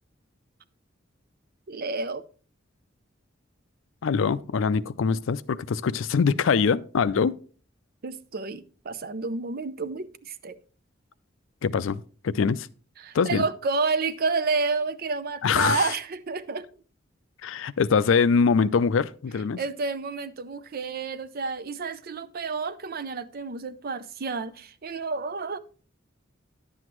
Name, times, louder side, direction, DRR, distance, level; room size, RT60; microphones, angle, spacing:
voice 1, 1.7-2.2 8.0-10.6 13.0-16.7 19.6-25.6, right 4 dB, 50° right, 0.5 m, -30 dB
voice 2, 4.0-7.3 11.6-12.7 13.1-13.5 15.4-15.9 17.4-19.6, left 5 dB, 70° left, 0.4 m, -23 dB
10.5 x 7.8 x 3.1 m
head